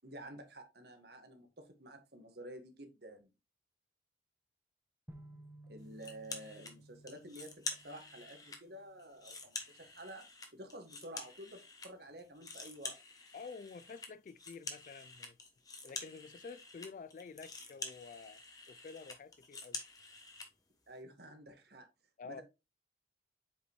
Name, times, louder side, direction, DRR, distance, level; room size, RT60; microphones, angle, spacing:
voice 1, 0.0-3.3 5.7-10.3 10.5-13.0 20.9-21.9 22.2-22.4, right 1 dB, 60° right, 1.6 m, -51 dB
sound 1, 5.1-9.1, right 1 dB, 10° right, 1.0 m, -57 dB
sound 2, 6.0-6.7 7.1-8.6 9.0-11.9 12.2-20.5, left 4 dB, 20° left, 1.1 m, -47 dB
voice 2, 13.3-15.4 15.8-18.4 18.7-19.8 22.2-22.4, left 5 dB, 45° left, 0.3 m, -49 dB
7.8 x 5.1 x 3.0 m
head